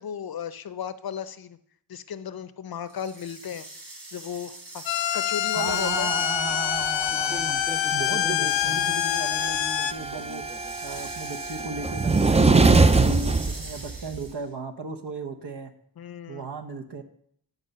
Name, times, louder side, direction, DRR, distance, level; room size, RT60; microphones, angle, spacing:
voice 1, 0.0-1.6 1.9-3.7 4.1-4.8 5.1-6.3 16.0-16.5, left 8 dB, 55° left, 13 dB, 0.8 m, -35 dB
sound 1, 2.9-14.5, right 2 dB, 85° right, 3.1 m, -44 dB
sound 2, 4.9-9.9, left 12 dB, 85° left, 0.6 m, -26 dB
voice 2, 5.5-7.6 7.9-10.4 10.8-15.7 16.3-17.0, right 4 dB, 65° right, 3 dB, 1.2 m, -35 dB
sound 3, 5.7-14.3, right 3 dB, 15° right, 0.5 m, -25 dB
10.5 x 4.5 x 6.6 m, 0.65 s
cardioid pair, 65°, 44 cm